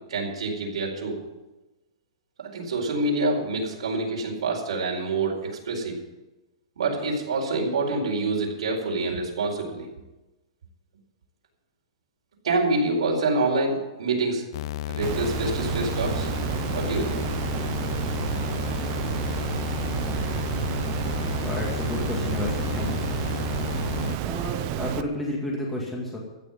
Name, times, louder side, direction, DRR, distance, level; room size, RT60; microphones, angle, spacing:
voice 1, 0.1-1.2 2.5-6.0 6.8-9.9 12.4-14.4 14.9-16.3 16.7-17.2, right 3 dB, 85° right, -1 dB, 4.5 m, -26 dB
sound 1, 14.5-24.2, left 15 dB, 50° left, 0.4 m, -32 dB
Water, 15.0-25.0, right 14 dB, 35° right, 0.6 m, -30 dB
voice 2, 21.3-23.0 24.2-26.2, left 1 dB, 5° left, -3 dB, 2.2 m, -31 dB
15.0 x 6.6 x 9.1 m, 1.1 s
hypercardioid pair, 160°, 3 cm